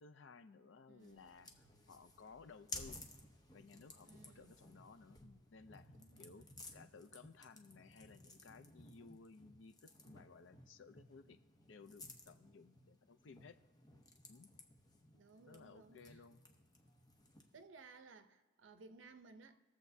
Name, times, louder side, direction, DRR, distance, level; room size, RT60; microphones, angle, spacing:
voice 1, 0.0-3.0 3.5-5.9 6.2-6.5 6.7-11.4 11.7-13.6 14.3-14.5 15.5-16.4, left 4 dB, 70° left, 0.5 m, -59 dB
voice 2, 0.9-1.5 4.0-4.6 5.9-6.4 15.1-16.2 17.5-19.6, right 4 dB, 75° right, 0.6 m, -60 dB
sound 1, 1.0-17.6, left 2 dB, 20° left, 0.8 m, -57 dB
20.5 x 7.3 x 2.7 m
head